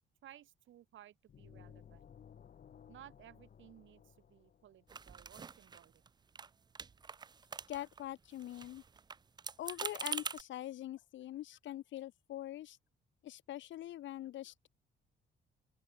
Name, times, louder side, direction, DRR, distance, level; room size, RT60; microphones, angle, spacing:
voice 1, 0.2-2.1 2.9-6.0, right 12 dB, 75° right, 3.2 m, -58 dB
sound 1, 1.3-5.1, left 8 dB, 45° left, 1.2 m, -58 dB
sound 2, 4.9-6.1 6.4-6.5 6.8-8.0 8.3-10.4, right 5 dB, 20° right, 0.4 m, -44 dB
voice 2, 7.7-8.8 9.6-12.8 13.2-14.7, left 13 dB, 70° left, 0.7 m, -44 dB
open air
cardioid pair, 90°, 20 cm